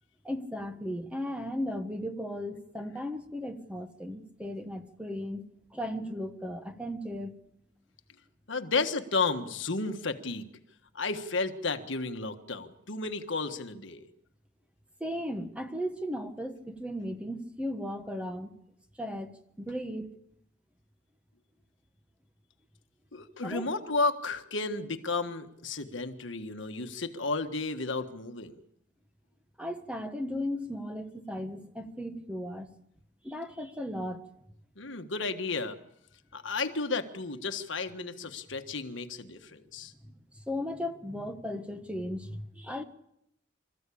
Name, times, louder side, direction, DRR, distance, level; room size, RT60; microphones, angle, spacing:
voice 1, 0.2-5.4 5.7-7.3 15.0-18.5 19.0-20.1 23.4-23.7 29.6-32.7 33.2-34.2 40.0-42.8, equal, 5° right, 7 dB, 1.3 m, -36 dB
voice 2, 8.5-10.5 10.9-14.0 23.1-28.6 34.8-35.8 36.3-39.9, left 3 dB, 70° left, 7 dB, 1.5 m, -32 dB
26.5 x 14.5 x 8.6 m, 0.80 s
head